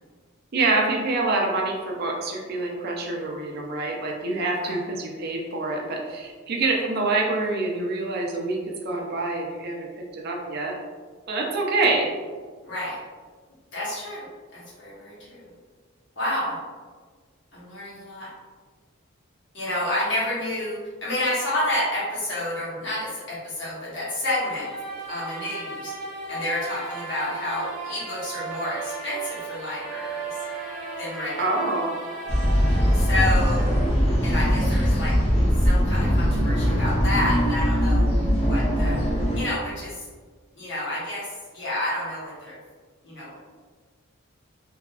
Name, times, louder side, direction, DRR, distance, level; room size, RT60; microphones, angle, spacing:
voice 1, 0.5-10.8 11.3-12.1 31.4-32.0 33.4-33.5, right 3 dB, 50° right, 0 dB, 0.4 m, -26 dB
voice 2, 12.6-13.0 13.7-14.3 14.5-15.4 16.2-16.6 17.5-18.3 19.5-24.7 25.1-25.9 26.3-30.2 31.0-31.7 32.9-33.7 34.2-35.2 35.6-38.1 38.5-39.0 39.3-40.0 40.6-42.6 43.0-43.4, left 1 dB, 55° left, -8 dB, 0.9 m, -29 dB
sound 1, 24.3-34.3, right 3 dB, ahead, 0.8 m, -36 dB
sound 2, 32.3-39.4, equal, 30° left, 0.5 m, -21 dB
2.7 x 2.3 x 2.3 m, 1.5 s
head